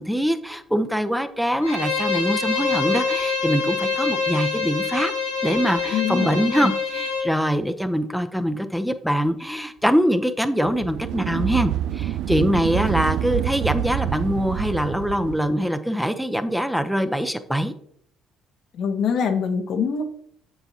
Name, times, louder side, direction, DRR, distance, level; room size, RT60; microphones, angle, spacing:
voice 1, 0.0-5.1 5.4-17.7, equal, ahead, 8 dB, 0.7 m, -23 dB
Bowed string instrument, 1.6-7.3, left 5 dB, 90° left, 1.8 m, -25 dB
voice 2, 5.9-6.3 18.7-20.0, left 6 dB, 55° left, 7 dB, 0.8 m, -24 dB
sound 1, 10.7-15.5, right 12 dB, 60° right, 0.3 m, -27 dB
7.8 x 7.0 x 2.8 m, 0.66 s
figure-of-eight pair, 50°, 0 cm